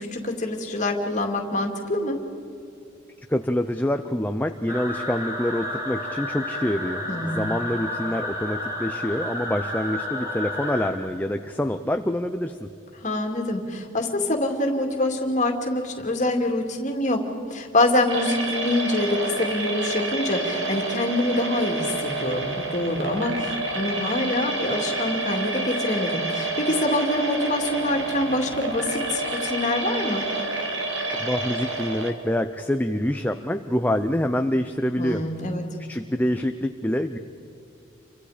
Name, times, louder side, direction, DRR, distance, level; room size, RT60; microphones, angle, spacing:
voice 1, 0.0-2.2 7.1-7.5 13.0-17.2 17.5-30.3 35.0-35.6, left 1 dB, 35° left, 3 dB, 2.5 m, -25 dB
voice 2, 3.3-12.7 31.1-35.2 35.9-37.2, left 1 dB, 10° left, 6 dB, 0.6 m, -26 dB
sound 1, 4.7-10.9, left 1 dB, 15° right, 2.9 m, -31 dB
sound 2, 18.1-32.1, right 2 dB, 60° right, 2.4 m, -29 dB
29.0 x 25.0 x 5.1 m, 2.5 s
head